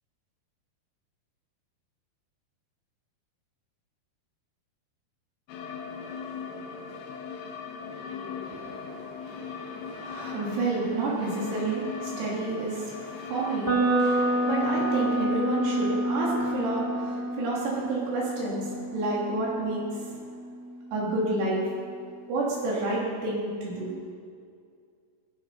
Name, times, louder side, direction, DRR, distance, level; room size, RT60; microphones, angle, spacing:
sound 1, 5.5-15.3, left 5 dB, 70° left, 2.9 m, -39 dB
voice 1, 8.4-20.1 20.9-21.6 22.3-23.9, right 2 dB, 85° right, -5 dB, 5.4 m, -30 dB
sound 2, 13.6-21.6, right 1 dB, 20° right, 1.6 m, -29 dB
18.5 x 11.0 x 5.6 m, 2.2 s
omnidirectional pair, 4.7 m